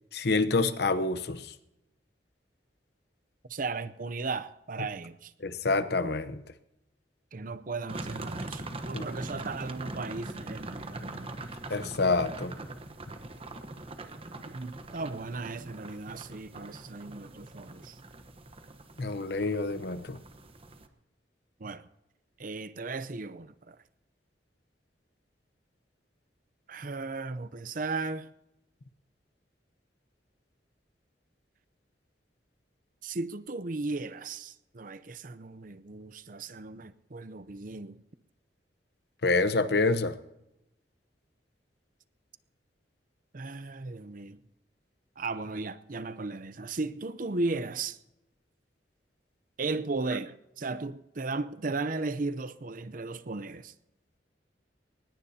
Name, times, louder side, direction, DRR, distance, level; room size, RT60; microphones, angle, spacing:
voice 1, 0.1-1.4 5.4-6.4 8.9-9.0 9.3-9.4 11.7-12.6 19.0-20.2 39.2-40.2, left 3 dB, 65° left, 0.9 m, -27 dB
voice 2, 3.5-5.3 7.3-11.3 14.4-18.0 21.6-21.8 22.4-23.8 26.7-28.3 33.0-38.0 43.3-44.4 45.2-48.0 49.6-53.7, right 3 dB, 50° right, 0.7 m, -36 dB
sound 1, 7.9-20.9, right 2 dB, 35° right, 1.1 m, -42 dB
21.5 x 19.5 x 2.9 m
head